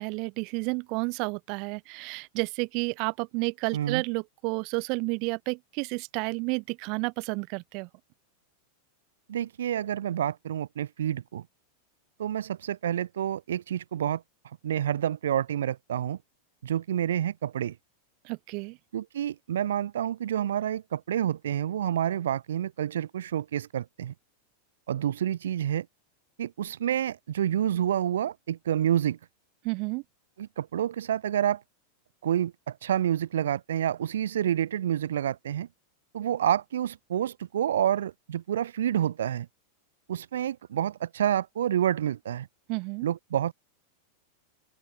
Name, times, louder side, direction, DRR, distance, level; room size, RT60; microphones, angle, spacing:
voice 1, 0.0-7.9 18.2-18.8 29.6-30.0 42.7-43.1, right 31 dB, 45° right, 3.3 m, -31 dB
voice 2, 9.3-11.4 12.2-14.2 14.6-16.2 16.6-17.8 18.9-24.1 24.9-25.9 26.4-29.2 30.4-31.6 32.2-35.7 36.1-39.5 40.1-42.5 43.0-43.5, right 10 dB, 60° right, 1.4 m, -28 dB
figure-of-eight pair, 90°, 0 cm